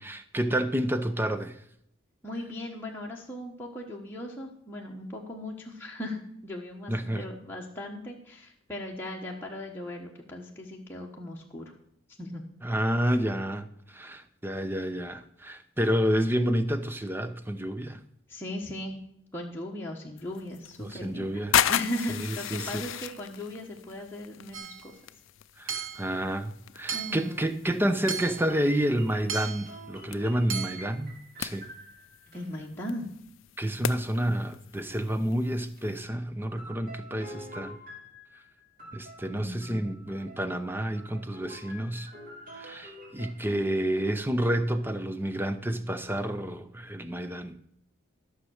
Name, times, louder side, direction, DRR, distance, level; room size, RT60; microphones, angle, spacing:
voice 1, 0.0-1.6 6.9-7.2 12.6-18.0 20.8-21.6 22.1-22.8 25.6-31.1 31.4-31.7 33.6-37.8 38.9-42.1 42.5-47.6, right 1 dB, 10° right, 0.6 m, -29 dB
voice 2, 2.2-11.7 12.2-12.4 18.3-19.0 19.3-25.0 26.9-27.5 32.3-33.1 39.3-40.0, left 1 dB, 10° left, 1.2 m, -38 dB
sound 1, 20.2-36.0, left 10 dB, 65° left, 0.4 m, -36 dB
Hammer / Chink clink, 24.5-24.9 25.7-26.1 26.9-27.3 28.1-28.5 29.3-29.7 30.5-30.9, right 7 dB, 75° right, 1.2 m, -35 dB
sound 2, 28.2-32.5 35.8-35.9 36.6-43.5, equal, 40° right, 3.0 m, -47 dB
13.0 x 6.5 x 6.4 m
head